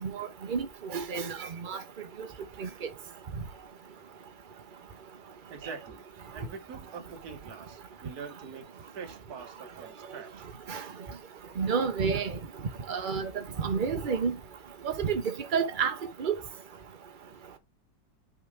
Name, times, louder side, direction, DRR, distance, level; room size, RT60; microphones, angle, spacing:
voice 1, 0.0-1.8 2.6-2.7 10.7-10.8 11.6-12.4 12.9-13.3 13.6-14.3 14.8-15.9 16.2-16.3, right 6 dB, 40° right, 0.8 m, -30 dB
voice 2, 5.5-6.0 6.3-10.5, right 5 dB, 55° right, 1.6 m, -44 dB
5.9 x 3.8 x 4.8 m
omnidirectional pair, 2.0 m